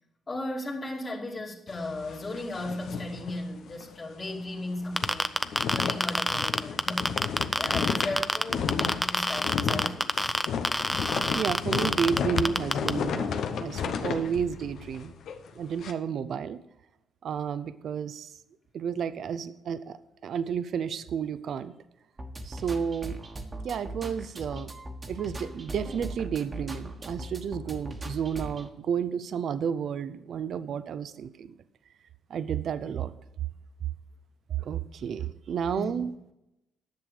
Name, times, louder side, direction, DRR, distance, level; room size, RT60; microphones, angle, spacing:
voice 1, 0.3-5.4 5.7-10.4 35.7-35.9, left 2 dB, 35° left, 2.4 m, -36 dB
sound 1, 1.7-3.9 4.3-4.4 4.7-15.9, left 7 dB, 70° left, 0.9 m, -33 dB
sound 2, 5.0-12.9, equal, ahead, 0.6 m, -26 dB
voice 2, 11.3-15.1 15.6-16.6 17.2-18.4 18.7-21.7 22.4-23.2 23.6-24.7 25.1-31.5 32.3-33.1 34.6-36.1, right 7 dB, 65° right, 0.5 m, -31 dB
sound 3, 22.2-28.7, right 1 dB, 30° right, 1.4 m, -39 dB
10.5 x 6.9 x 6.6 m
cardioid pair, 90°, 0 cm